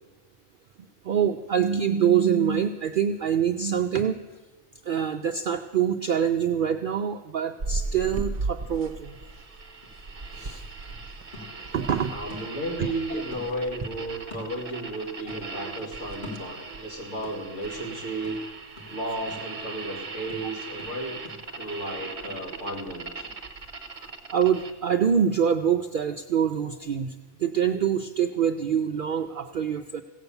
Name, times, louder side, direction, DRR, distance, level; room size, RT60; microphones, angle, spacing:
voice 1, 1.0-4.2 4.8-9.2 10.3-10.6 11.7-12.1 12.8-12.9 23.9-30.0, right 8 dB, 65° right, 6 dB, 0.5 m, -25 dB
sound 1, 7.6-24.7, right 3 dB, 30° right, 0.8 m, -37 dB
sound 2, 9.8-13.0 13.3-15.0 15.3-16.9 17.2-22.9 23.2-23.3, left 2 dB, 35° left, 2.8 m, -46 dB
voice 2, 12.1-18.4 18.9-21.2 21.5-23.3, right 1 dB, 70° left, 0 dB, 2.5 m, -34 dB
16.0 x 8.0 x 6.9 m, 1.2 s
omnidirectional pair, 1.4 m